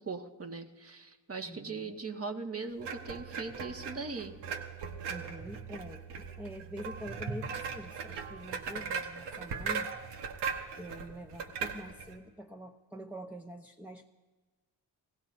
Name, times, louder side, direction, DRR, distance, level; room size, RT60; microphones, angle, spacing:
voice 1, 0.1-4.4, right 4 dB, 35° right, 4 dB, 1.8 m, -40 dB
voice 2, 1.5-1.9 5.1-9.9 10.8-14.1, equal, 5° right, 0 dB, 0.9 m, -45 dB
sound 1, 2.8-12.2, right 6 dB, 80° right, 1.4 m, -39 dB
28.5 x 18.0 x 2.7 m, 1.3 s
supercardioid pair, 50°, 41 cm